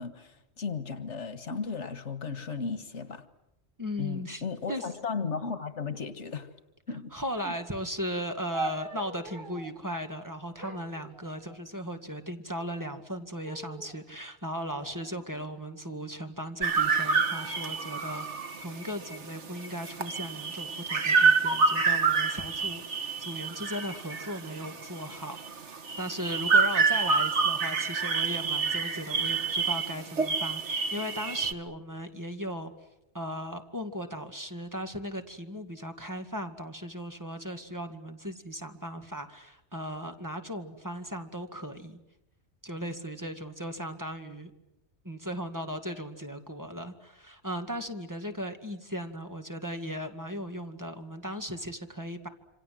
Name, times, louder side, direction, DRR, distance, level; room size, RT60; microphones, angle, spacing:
voice 1, 0.0-3.3 4.0-6.5 6.9-7.1 7.4-7.5, left 5 dB, 90° left, 11 dB, 1.9 m, -35 dB
voice 2, 3.8-4.4 4.7-4.9 7.1-32.7 33.1-42.0 42.6-44.5 45.0-52.3, equal, 15° right, 5 dB, 2.2 m, -37 dB
sound 1, 8.5-9.8 10.6-11.8 12.6-13.1 13.4-14.0 14.7-16.0 16.8-17.2, right 4 dB, 50° right, 2.0 m, -42 dB
sound 2, 16.6-31.5, right 4 dB, 80° right, 1.8 m, -28 dB
27.5 x 26.0 x 7.8 m, 0.87 s
omnidirectional pair, 1.2 m